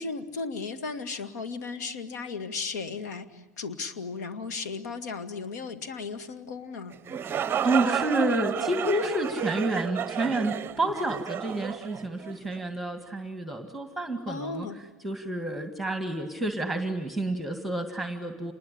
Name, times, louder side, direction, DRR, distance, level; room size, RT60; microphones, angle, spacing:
voice 1, 0.0-7.0 14.3-14.8, left 4 dB, 70° left, 9 dB, 2.1 m, -35 dB
sound 1, 6.9-12.6, right 8 dB, 25° right, 0.8 m, -31 dB
voice 2, 7.5-14.7 15.0-18.5, right 1 dB, ahead, 7 dB, 2.1 m, -29 dB
27.5 x 20.5 x 10.0 m, 1.2 s
hypercardioid pair, 90°, 9 cm